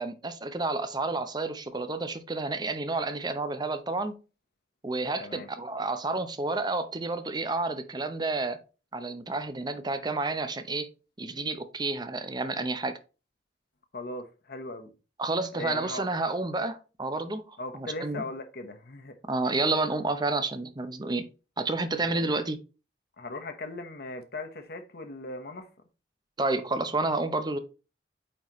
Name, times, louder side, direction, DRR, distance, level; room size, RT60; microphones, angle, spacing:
voice 1, 0.0-4.1 4.8-8.6 8.9-10.9 11.2-13.0 15.2-18.2 19.2-21.3 21.6-22.6 26.4-27.6, right 3 dB, 25° right, 0.7 m, -30 dB
voice 2, 5.2-5.5 13.9-14.9 15.5-16.1 17.6-19.2 22.0-22.3 23.2-25.7, left 2 dB, 60° left, 1.1 m, -38 dB
8.8 x 4.1 x 3.1 m
head